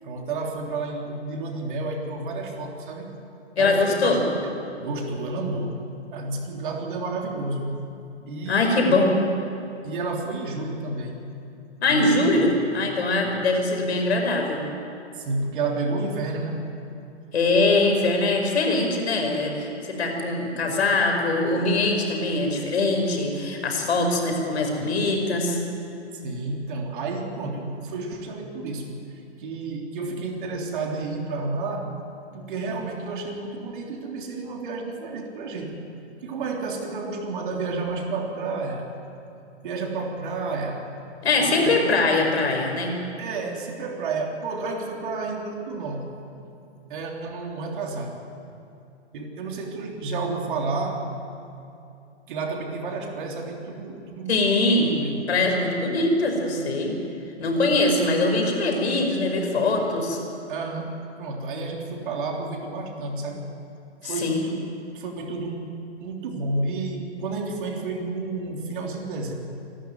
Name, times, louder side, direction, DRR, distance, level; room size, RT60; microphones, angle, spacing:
voice 1, 0.0-3.2 3.6-5.8 6.1-7.8 8.2-9.0 9.8-11.2 11.9-12.2 13.2-13.5 15.1-16.7 17.8-17.9 26.1-28.9 29.4-32.0 32.3-35.8 36.2-38.9 39.6-40.9 41.4-42.0 43.2-46.1 46.9-48.2 49.1-51.1 52.3-55.3 60.5-63.5 64.0-65.6 66.0-69.3, right 3 dB, 45° right, 1 dB, 3.5 m, -31 dB
voice 2, 3.6-4.2 8.5-9.2 11.8-14.6 17.3-25.6 41.2-42.9 54.3-54.9 55.3-57.0 57.4-60.2 64.0-64.4, left 2 dB, 65° left, 2 dB, 5.4 m, -22 dB
27.5 x 12.5 x 9.5 m, 2.7 s
hypercardioid pair, 145°, 35 cm